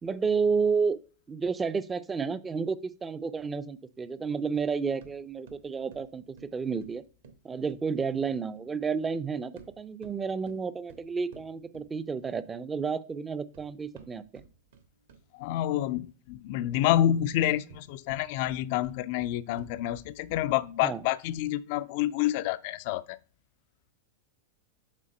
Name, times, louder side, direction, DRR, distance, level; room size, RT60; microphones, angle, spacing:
voice 1, 0.0-1.0 1.3-7.0 7.4-14.4 20.8-21.0, right 5 dB, 15° right, 0.5 m, -31 dB
sound 1, 4.5-8.7 9.4-12.5 13.2-15.4 17.5-20.7, right 5 dB, 60° right, 1.2 m, -54 dB
voice 2, 15.3-23.2, left 12 dB, 50° left, 0.3 m, -28 dB
7.5 x 4.0 x 4.3 m
figure-of-eight pair, 90°, 0 cm